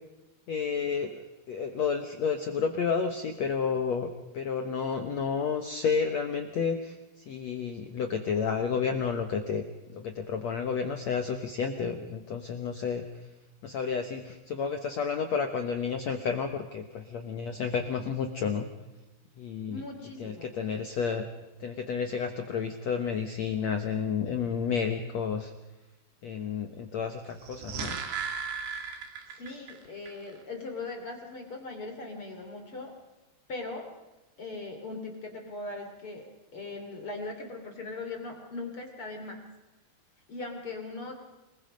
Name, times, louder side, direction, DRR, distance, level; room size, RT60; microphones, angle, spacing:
voice 1, 0.5-4.1 4.3-9.6 9.9-13.0 13.6-18.7 19.4-19.8 20.2-21.3 21.6-25.5 26.2-28.0, left 6 dB, 75° left, 6 dB, 1.6 m, -31 dB
voice 2, 19.7-20.5 29.3-32.9 33.5-33.9 34.4-39.4 40.3-41.1, left 3 dB, 35° left, 4 dB, 3.2 m, -39 dB
sound 1, 27.3-29.8 30.1-30.2, right 6 dB, 80° right, 4.6 m, -36 dB
28.0 x 20.5 x 5.2 m, 1.1 s
omnidirectional pair, 4.9 m